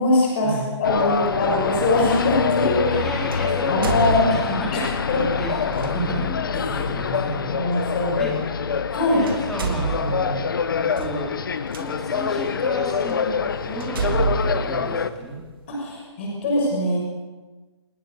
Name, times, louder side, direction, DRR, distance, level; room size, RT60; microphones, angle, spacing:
voice 1, 0.0-3.0 3.7-4.2 4.7-4.8 5.1-5.2 6.6-6.8 7.5-8.6 8.9-9.3 15.7-17.0, left 2 dB, 25° left, -1 dB, 6.4 m, -22 dB
sound 1, 0.8-15.1, left 6 dB, 45° left, 1.3 m, -25 dB
sound 2, 1.2-1.4 3.3-4.8 5.7-5.9 7.8-7.9 8.8-9.0 9.2-11.8 12.5-12.6 13.1-13.2 13.8-15.6, right 4 dB, 50° right, 3.1 m, -28 dB
voice 2, 2.9-7.7 8.2-8.3 9.0-10.4 11.0-11.3 11.8-15.4, right 1 dB, 5° left, -4 dB, 3.9 m, -32 dB
29.0 x 19.0 x 6.7 m, 1.3 s
hypercardioid pair, 175°, 15 cm